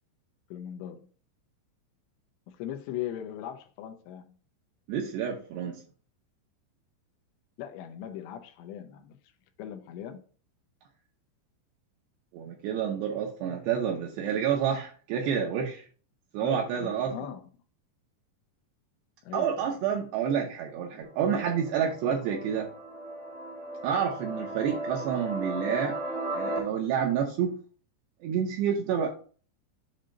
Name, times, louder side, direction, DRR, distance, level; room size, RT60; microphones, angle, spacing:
voice 1, 0.5-1.1 2.5-4.3 7.6-9.2 9.6-10.2 16.4-17.5 19.2-19.8, left 10 dB, 85° left, 2.8 m, -39 dB
voice 2, 4.9-5.8 12.3-15.8 16.3-17.1 19.3-22.7 23.8-26.0 26.3-27.5 28.2-29.1, right 8 dB, 75° right, 2.7 m, -29 dB
sound 1, 21.0-26.6, right 1 dB, ahead, 0.5 m, -36 dB
7.6 x 2.7 x 5.0 m
omnidirectional pair, 5.3 m